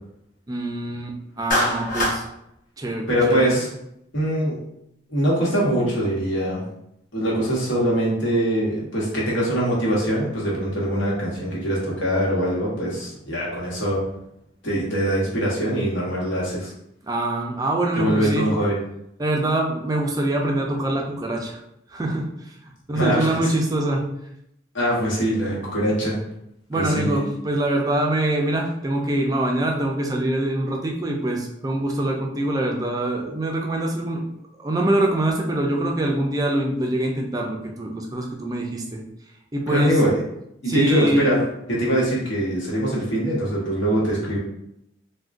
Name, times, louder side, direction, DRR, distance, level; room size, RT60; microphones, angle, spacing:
voice 1, 0.5-2.2 2.8-3.6 17.0-18.5 19.2-21.6 21.9-22.5 22.9-24.1 26.7-34.2 34.6-39.0 39.5-40.0 40.7-41.4, right 1 dB, 20° right, 0 dB, 0.3 m, -24 dB
Clapping, 1.5-2.2, left 1 dB, 45° left, 0.7 m, -22 dB
voice 2, 3.1-3.7 4.1-4.6 5.1-6.6 7.1-14.0 14.6-16.7 17.9-18.8 22.9-23.5 24.7-26.2 26.7-27.3 39.7-40.2 40.6-41.4 41.8-44.4, right 1 dB, 90° left, -5 dB, 1.0 m, -23 dB
3.5 x 2.2 x 2.5 m, 0.80 s
head